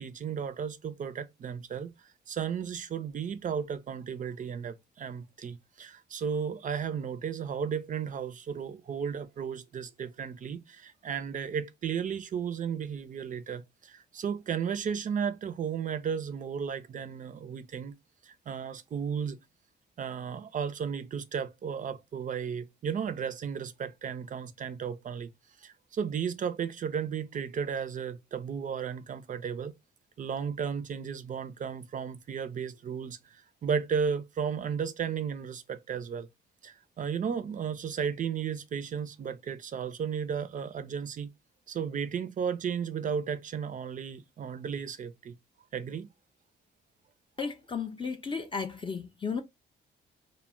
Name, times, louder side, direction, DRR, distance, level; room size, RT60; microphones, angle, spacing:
voice 1, 0.0-1.9 2.3-17.9 18.2-19.4 20.0-25.3 25.6-29.7 30.2-36.3 36.6-41.3 41.7-45.3 45.7-46.1, right 7 dB, 40° right, 0.4 m, -34 dB
voice 2, 47.4-49.4, left 5 dB, 25° left, 0.5 m, -34 dB
2.2 x 2.0 x 3.6 m
cardioid pair, 90°, 20 cm